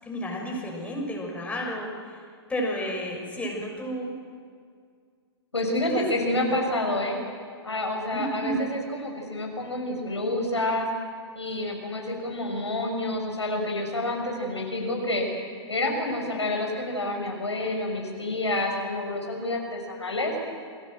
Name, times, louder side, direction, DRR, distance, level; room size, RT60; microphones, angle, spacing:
voice 1, 0.0-2.2 2.5-4.1 5.9-6.6 8.1-8.7, equal, 10° left, -1 dB, 6.2 m, -32 dB
voice 2, 5.5-7.2 7.6-10.9 11.3-15.3 15.7-20.3, left 1 dB, 90° left, 1 dB, 6.6 m, -28 dB
28.5 x 21.5 x 7.8 m, 2.1 s
figure-of-eight pair, 110°, 14 cm